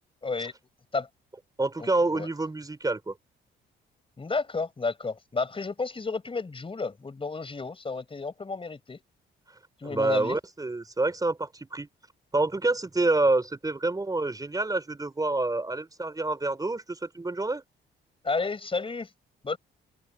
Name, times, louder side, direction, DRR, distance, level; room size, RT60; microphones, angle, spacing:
voice 1, 0.2-0.5 0.9-1.1 1.8-2.3 4.2-9.0 9.8-10.4 18.2-19.1 19.4-19.6, left 4 dB, 25° left, 4.8 m, -31 dB
voice 2, 1.6-3.1 9.8-11.9 12.3-17.6, right 2 dB, 20° right, 4.4 m, -27 dB
cardioid pair, 90°, 20 cm